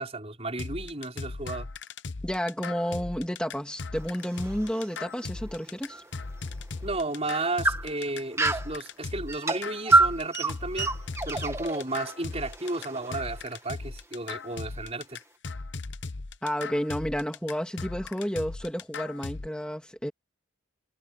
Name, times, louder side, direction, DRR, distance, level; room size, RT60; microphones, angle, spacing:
voice 1, 0.0-1.7 6.8-10.9 11.3-15.2, right 2 dB, 30° right, 5.6 m, -33 dB
sound 1, 0.6-19.5, left 3 dB, 55° left, 0.9 m, -38 dB
voice 2, 2.2-6.0 16.4-20.1, equal, 5° left, 2.8 m, -31 dB
sound 2, 4.0-6.1 6.5-6.6 7.2-8.8 9.3-13.6, right 2 dB, 15° right, 1.7 m, -27 dB
head